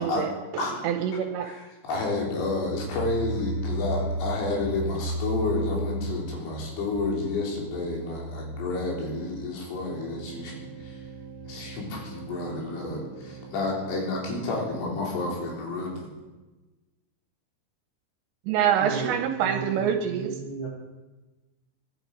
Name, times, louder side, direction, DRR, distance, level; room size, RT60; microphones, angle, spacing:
voice 1, 0.0-1.5 18.5-20.4, right 9 dB, 75° right, 6 dB, 2.8 m, -26 dB
voice 2, 0.6-0.9 1.4-1.6 1.8-11.0 11.5-16.1, left 3 dB, 80° left, -2 dB, 6.1 m, -30 dB
sound 1, 1.9-12.6 12.9-13.0 13.3-13.4, right 1 dB, 35° left, 4.8 m, -35 dB
sound 2, 9.8-16.5, right 7 dB, 55° right, 2.0 m, -46 dB
voice 3, 18.8-19.1 19.4-20.7, right 4 dB, 20° left, -5 dB, 7.6 m, -34 dB
23.0 x 12.0 x 5.2 m, 1.1 s
omnidirectional pair, 5.7 m